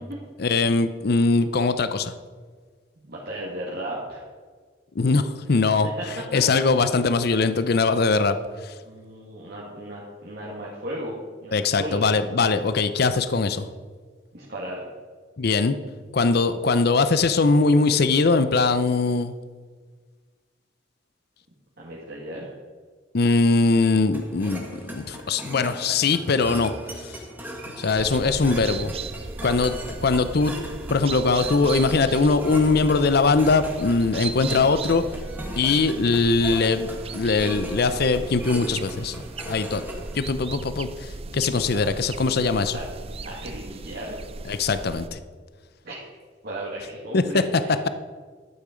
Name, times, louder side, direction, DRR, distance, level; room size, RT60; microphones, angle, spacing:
voice 1, 0.4-2.1 5.0-5.9 6.3-8.4 8.6-8.7 11.5-13.7 15.4-15.7 16.1-19.3 23.1-27.2 27.8-28.9 29.4-29.7 30.0-30.5 30.9-35.0 35.6-39.1 39.5-39.9 40.1-42.8 44.5-45.2 47.1-47.2, left 3 dB, 55° left, 12 dB, 0.6 m, -21 dB
voice 2, 3.0-4.2 6.0-6.1 8.8-12.0 14.3-14.8 21.8-22.5 41.7-41.8 42.7-42.9 43.2-44.2 45.8-46.0 46.4-47.8, right 1 dB, 55° right, -5 dB, 2.0 m, -35 dB
sound 1, 24.1-40.1, right 1 dB, 10° right, 1.5 m, -38 dB
sound 2, 28.0-45.1, right 3 dB, 30° right, 0.5 m, -37 dB
12.0 x 8.7 x 5.1 m, 1.5 s
head